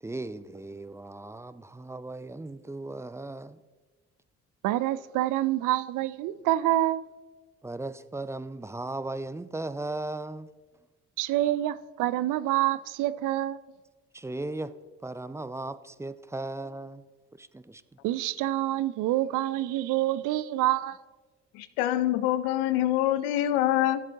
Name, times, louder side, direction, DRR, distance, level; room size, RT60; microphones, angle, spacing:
voice 1, 0.0-3.6 7.6-10.5 14.1-14.7 15.0-17.0 17.4-17.8, right 2 dB, 10° right, 0.4 m, -37 dB
voice 2, 4.6-7.0 11.2-13.6 18.0-21.0, right 14 dB, 70° right, 0.5 m, -27 dB
voice 3, 21.5-24.0, left 13 dB, 85° left, 0.5 m, -25 dB
13.0 x 7.6 x 2.8 m
hypercardioid pair, 50°, 32 cm